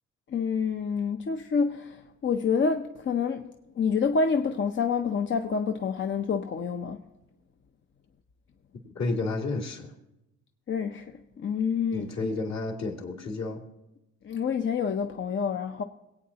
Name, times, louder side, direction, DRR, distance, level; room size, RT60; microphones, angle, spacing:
voice 1, 0.3-7.0 10.7-12.3 14.2-15.8, left 5 dB, 40° left, 0.6 m, -28 dB
voice 2, 8.9-9.9 11.9-13.6, left 3 dB, 60° left, 2.6 m, -31 dB
21.5 x 8.6 x 2.8 m
cardioid pair, 90°, 30 cm